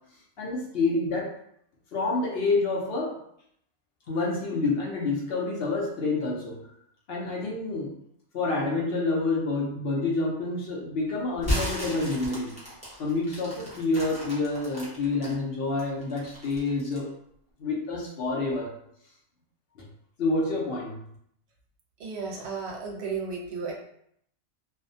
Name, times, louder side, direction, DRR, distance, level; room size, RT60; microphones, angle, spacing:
voice 1, 0.4-1.4 1.9-3.2 4.1-6.6 7.1-7.9 8.3-12.5 13.0-17.1 17.6-18.7 19.8-19.9 20.2-21.0, left 3 dB, 65° left, -2 dB, 0.8 m, -28 dB
sound 1, 11.3-15.3 15.8-17.1, left 1 dB, 10° right, 0.6 m, -33 dB
voice 2, 22.0-23.7, right 5 dB, 70° right, 0 dB, 0.8 m, -33 dB
2.4 x 2.1 x 2.5 m, 0.70 s
omnidirectional pair, 1.2 m